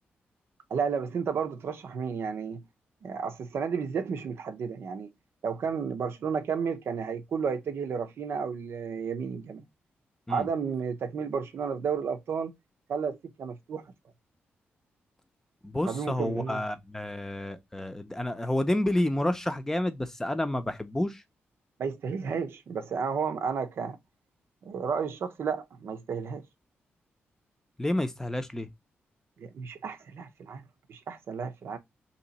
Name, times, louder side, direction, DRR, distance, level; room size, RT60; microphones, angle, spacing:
voice 1, 0.7-2.6 3.0-5.1 5.4-9.7 10.3-12.5 12.9-13.8 15.9-16.6 21.8-24.0 24.6-26.4 29.4-30.6 30.9-31.8, right 6 dB, 70° right, 0.6 m, -32 dB
voice 2, 15.6-21.2 27.8-28.7, left 1 dB, 10° left, 0.7 m, -29 dB
2.9 x 2.8 x 4.0 m
cardioid pair, 75°, 4 cm